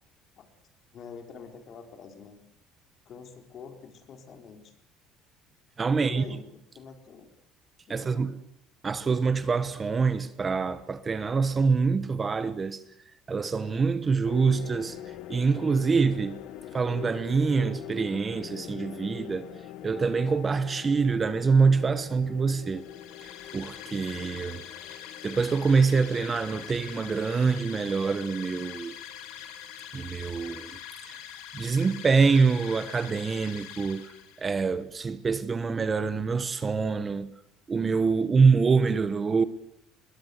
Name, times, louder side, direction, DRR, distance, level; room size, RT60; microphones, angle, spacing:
voice 1, 0.9-2.4 3.1-4.7 5.9-7.3 7.9-8.3, left 6 dB, 40° left, 4.2 m, -46 dB
voice 2, 5.8-6.2 7.9-8.3 8.8-12.8 13.3-15.0 15.3-16.4 16.7-19.5 19.8-22.8 23.2-24.6 25.2-28.9 29.9-30.7 31.0-31.2 31.5-37.3 37.7-39.4, right 5 dB, 20° right, 1.0 m, -25 dB
sound 1, 14.2-30.8, left 12 dB, 65° left, 1.5 m, -44 dB
sound 2, 22.7-34.6, left 10 dB, 85° left, 4.4 m, -44 dB
23.0 x 21.5 x 8.1 m
cardioid pair, 145°, 0 cm